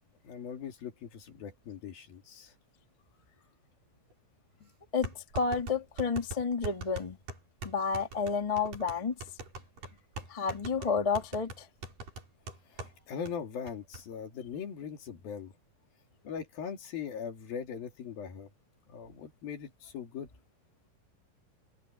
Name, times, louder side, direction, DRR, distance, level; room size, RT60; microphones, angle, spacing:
voice 1, 0.2-2.5 4.6-4.7 12.7-15.5 16.2-18.5 18.9-20.3, left 7 dB, 80° left, 4.6 m, -40 dB
sound 1, 4.1-4.2 5.0-13.0 13.3-13.4 13.7-14.0, right 2 dB, 65° right, 8.1 m, -42 dB
voice 2, 4.9-7.2 7.6-9.1 10.3-11.7, left 5 dB, 20° left, 0.9 m, -30 dB
open air
omnidirectional pair, 4.1 m